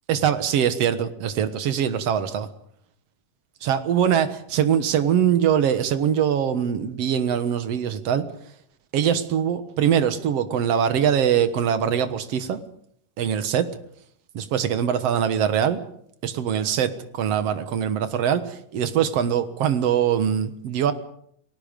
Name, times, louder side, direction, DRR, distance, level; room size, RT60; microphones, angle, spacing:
voice 1, 0.1-2.5 3.6-8.2 8.9-12.6 13.2-13.7 14.3-15.8 16.2-20.9, right 9 dB, 55° right, 10 dB, 2.0 m, -22 dB
30.0 x 19.0 x 5.3 m, 0.68 s
omnidirectional pair, 3.9 m